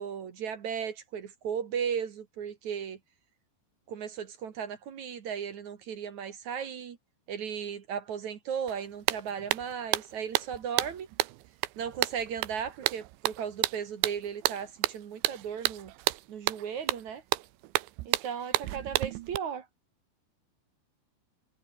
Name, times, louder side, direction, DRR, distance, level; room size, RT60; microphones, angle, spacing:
voice 1, 0.0-3.0 3.9-7.0 7.3-11.1 11.8-15.9 16.3-17.2 18.1-19.7, right 7 dB, 55° right, 2.5 m, -36 dB
sound 1, 8.7-8.8 9.1-19.4, right 18 dB, 80° right, 3.2 m, -31 dB
omnidirectional pair, 5.2 m